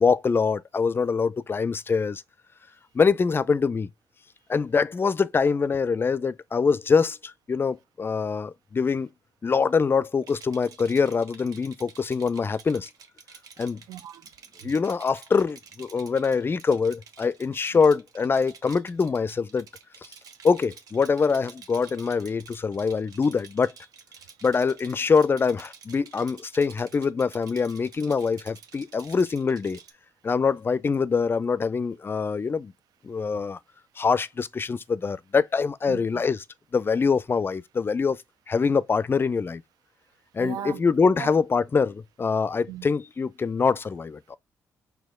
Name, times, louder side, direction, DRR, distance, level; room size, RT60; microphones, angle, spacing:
voice 1, 0.0-2.2 2.9-3.9 4.5-9.1 9.4-12.9 13.6-13.8 14.6-19.7 20.4-23.7 24.4-29.8 30.2-32.7 33.0-33.6 34.0-36.4 36.7-38.2 38.5-39.6 40.3-44.2, left 5 dB, 35° left, 0.4 m, -24 dB
Rattle, 10.2-29.9, right 6 dB, 70° right, 0.9 m, -50 dB
voice 2, 13.9-14.7 17.7-17.8 20.1-20.4 24.2-24.3 30.2-30.3 33.1-33.4 33.9-34.0 35.9-36.2 40.1-41.3 42.7-42.9, right 11 dB, 85° right, 0.5 m, -41 dB
4.3 x 2.8 x 3.5 m
cardioid pair, 70°, 7 cm